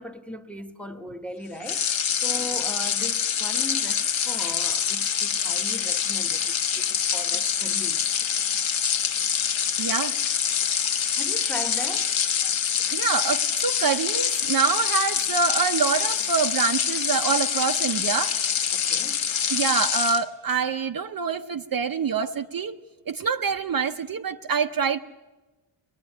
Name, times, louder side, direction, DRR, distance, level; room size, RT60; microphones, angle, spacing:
voice 1, 0.0-1.9 2.2-8.1 11.1-12.1 12.4-12.6 18.7-19.5, equal, 5° left, 1.0 m, -38 dB
sound 1, 1.6-20.2, left 8 dB, 70° left, 1.3 m, -25 dB
voice 2, 9.8-10.1 12.9-18.4 19.5-22.8 23.1-25.0, right 6 dB, 45° right, 0.7 m, -25 dB
24.0 x 19.5 x 9.9 m
wide cardioid pair, 165°, 50 cm